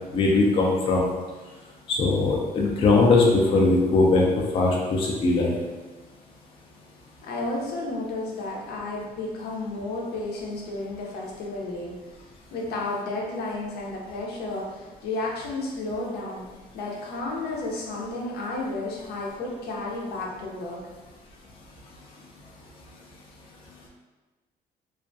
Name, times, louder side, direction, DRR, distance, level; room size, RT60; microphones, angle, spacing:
voice 1, 0.1-1.1 1.9-4.2 4.5-5.5, left 3 dB, 35° left, -2 dB, 0.4 m, -20 dB
voice 2, 7.2-11.9 12.5-16.4 16.7-20.8, left 2 dB, 80° left, -2 dB, 0.6 m, -32 dB
2.4 x 2.2 x 2.5 m, 1.3 s
cardioid pair, 155°, 16 cm